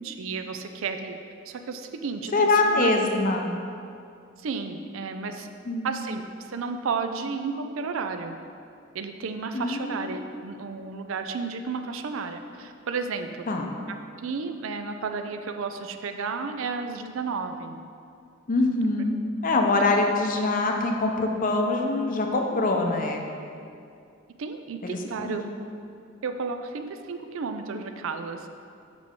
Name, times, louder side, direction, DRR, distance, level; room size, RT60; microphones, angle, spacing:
voice 1, 0.0-1.2 1.5-2.9 4.4-5.5 5.8-8.4 8.9-13.5 13.9-17.8 24.4-25.4 26.2-28.5, right 5 dB, 75° right, 7 dB, 0.4 m, -32 dB
voice 2, 2.3-3.5 5.7-5.9 9.5-10.2 13.5-13.7 18.5-19.1 19.4-23.2 24.8-25.4, left 2 dB, 40° left, 3 dB, 0.6 m, -24 dB
7.4 x 5.0 x 3.6 m, 2.5 s
head